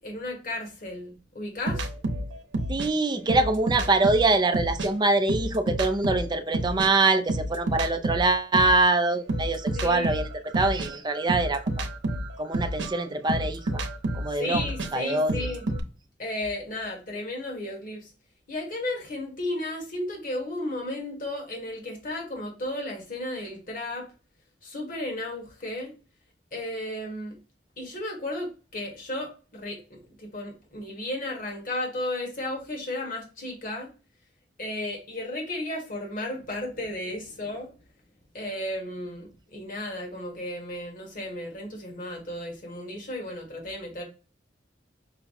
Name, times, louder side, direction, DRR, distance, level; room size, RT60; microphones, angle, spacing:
voice 1, 0.0-1.9 9.7-10.2 14.3-15.7 16.2-18.1 18.5-24.1 24.6-25.9 26.5-27.4 27.8-33.9 34.6-37.7 38.3-44.0, left 1 dB, 50° left, 0 dB, 1.6 m, -34 dB
sound 1, 1.7-4.9 5.2-8.8 9.3-15.8, right 1 dB, 80° right, 0.8 m, -30 dB
voice 2, 2.7-10.3 10.5-11.6 12.4-13.8 14.1-14.6 14.9-15.5, right 2 dB, 25° right, 8 dB, 0.5 m, -24 dB
5.7 x 2.2 x 4.1 m, 0.35 s
head